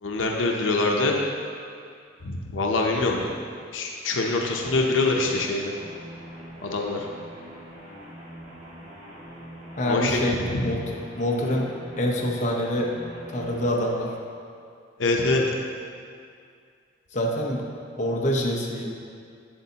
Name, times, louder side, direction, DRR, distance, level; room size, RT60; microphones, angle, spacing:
voice 1, 0.0-1.1 2.2-3.3 3.7-5.7 6.6-7.1 9.9-10.2 10.5-10.6 15.0-15.4, left 3 dB, 85° left, 0 dB, 0.7 m, -24 dB
sound 1, 4.4-13.9, equal, 40° right, 2.0 m, -43 dB
voice 2, 9.8-11.7 12.0-12.9 13.3-14.1 17.1-17.6 18.0-18.9, left 1 dB, 40° left, -2 dB, 0.9 m, -26 dB
8.0 x 8.0 x 2.9 m, 2.3 s
head